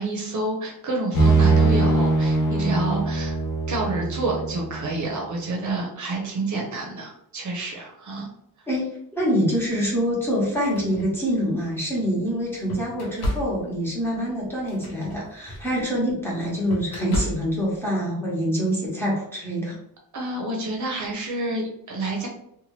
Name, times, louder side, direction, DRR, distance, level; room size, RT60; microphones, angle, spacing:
voice 1, 0.0-3.4 3.7-8.3 20.1-22.3, right 2 dB, 50° right, 0 dB, 0.7 m, -28 dB
sound 1, 1.1-4.9, right 3 dB, 55° left, 0.6 m, -21 dB
voice 2, 8.7-19.8, equal, 5° left, -6 dB, 0.9 m, -25 dB
sound 2, 9.6-9.7 10.4-11.8 12.3-17.8, equal, 85° left, 0.8 m, -34 dB
2.8 x 2.2 x 3.0 m, 0.74 s
wide cardioid pair, 175°, 38 cm